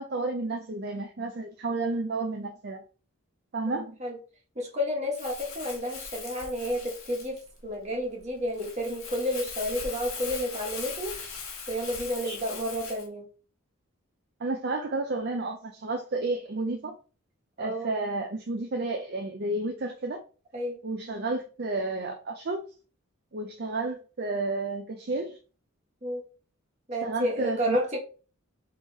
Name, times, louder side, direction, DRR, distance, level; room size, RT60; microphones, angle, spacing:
voice 1, 0.0-2.8 3.5-4.0 12.2-12.4 14.4-16.9 17.6-20.2 20.8-22.6 23.3-25.4 27.0-27.8, right 2 dB, 45° right, 0.5 m, -31 dB
voice 2, 3.7-4.2 4.5-11.2 11.7-13.3 17.6-17.9 20.5-20.8 26.0-26.2 26.9-28.0, equal, 30° right, 1.4 m, -31 dB
Crumpling crinkling, 5.1-13.1, left 5 dB, 70° left, 1.4 m, -40 dB
3.6 x 3.2 x 4.0 m
head